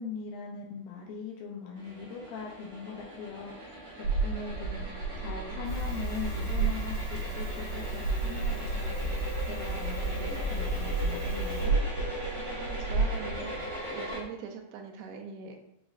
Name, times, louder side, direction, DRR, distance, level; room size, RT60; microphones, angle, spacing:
voice 1, 0.0-4.9 5.2-9.2 9.5-11.8, left 5 dB, 80° left, -1 dB, 2.4 m, -41 dB
sound 1, 1.8-14.2, right 1 dB, 45° right, 1.6 m, -40 dB
sound 2, 4.0-14.2, right 4 dB, 60° right, 2.6 m, -33 dB
Crackle, 5.6-11.7, left 1 dB, 50° left, 2.5 m, -36 dB
voice 2, 12.5-15.6, right 6 dB, 85° right, 3 dB, 2.5 m, -42 dB
6.1 x 3.0 x 2.5 m, 0.80 s
omnidirectional pair, 4.2 m